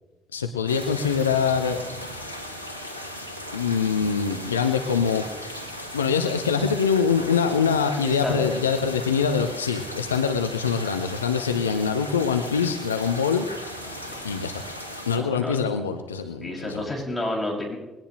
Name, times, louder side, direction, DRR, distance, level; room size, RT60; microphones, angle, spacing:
voice 1, 0.3-1.8 3.5-5.5 5.9-13.4 14.2-14.6 15.1-16.8, left 6 dB, 80° left, 7 dB, 0.7 m, -24 dB
sound 1, 0.7-15.2, left 1 dB, 90° right, 1.3 m, -37 dB
voice 2, 8.0-8.5 14.1-14.3 15.1-15.6 16.4-17.8, left 1 dB, 15° left, -1 dB, 6.6 m, -30 dB
21.0 x 18.0 x 3.2 m, 1.1 s
figure-of-eight pair, 50°, 0 cm